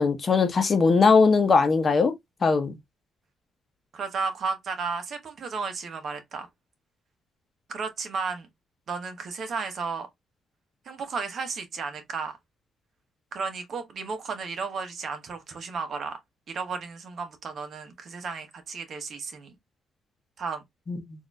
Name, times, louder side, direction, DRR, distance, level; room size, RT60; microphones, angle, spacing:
voice 1, 0.0-2.1 2.4-2.7 20.9-21.0, left 4 dB, 40° left, 0.9 m, -20 dB
voice 2, 3.9-6.5 7.7-8.5 8.9-10.1 10.9-12.4 13.3-16.2 16.5-19.5 20.4-20.6, right 5 dB, 55° right, 1.0 m, -33 dB
4.1 x 2.6 x 2.3 m
cardioid pair, 90°, 0 cm